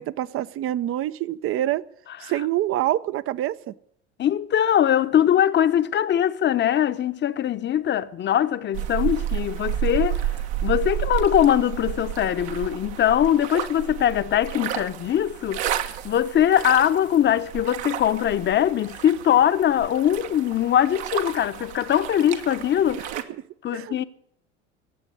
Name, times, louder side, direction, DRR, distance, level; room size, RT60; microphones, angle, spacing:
voice 1, 0.0-1.9 2.2-3.7 22.9-23.2 23.7-24.0, right 13 dB, 40° right, 0.7 m, -26 dB
voice 2, 4.2-10.3 10.6-23.1 23.6-24.0, left 10 dB, 30° left, 0.9 m, -21 dB
sound 1, 8.7-23.2, right 11 dB, 65° right, 1.4 m, -31 dB
16.5 x 7.7 x 9.6 m
figure-of-eight pair, 75°, 35 cm